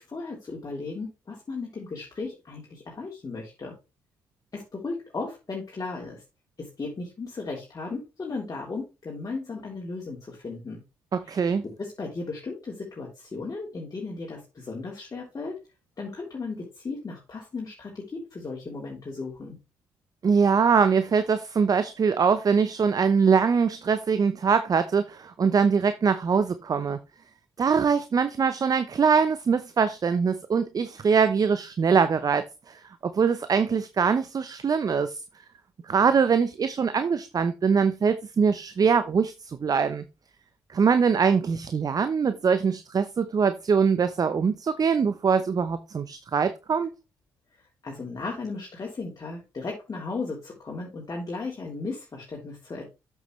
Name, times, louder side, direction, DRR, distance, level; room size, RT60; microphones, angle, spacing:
voice 1, 0.0-3.7 4.5-6.2 6.6-10.8 11.2-11.4 11.8-15.6 16.0-19.6 47.8-52.8, left 3 dB, 35° left, 3.4 m, -36 dB
voice 2, 11.1-11.6 20.2-27.0 27.6-35.2 35.9-40.0 40.7-46.9, right 6 dB, 40° right, 0.8 m, -23 dB
8.1 x 7.2 x 3.2 m
hypercardioid pair, 50°, 9 cm